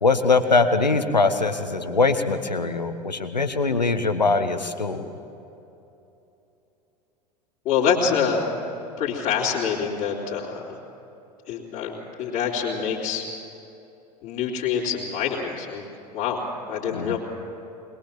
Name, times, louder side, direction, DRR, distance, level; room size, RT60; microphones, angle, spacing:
voice 1, 0.0-5.0 16.9-17.2, left 3 dB, 85° left, 9 dB, 1.3 m, -22 dB
voice 2, 7.7-8.5 9.0-10.6 11.5-13.2 14.2-15.8 16.1-17.2, left 7 dB, 40° left, -7 dB, 3.4 m, -26 dB
22.0 x 21.0 x 7.4 m, 2.9 s
figure-of-eight pair, 80°, 21 cm